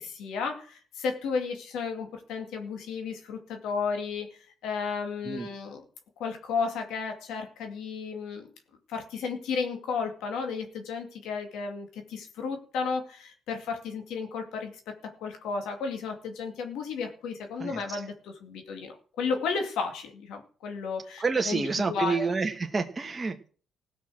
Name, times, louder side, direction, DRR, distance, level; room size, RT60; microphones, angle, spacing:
voice 1, 0.0-5.8 6.2-8.5 8.9-21.6 21.9-22.2, left 5 dB, 85° left, 4 dB, 2.3 m, -33 dB
voice 2, 17.6-18.0 21.2-23.5, right 4 dB, 25° right, 4 dB, 1.3 m, -29 dB
17.0 x 6.0 x 6.3 m, 0.42 s
cardioid pair, 90°, 0 cm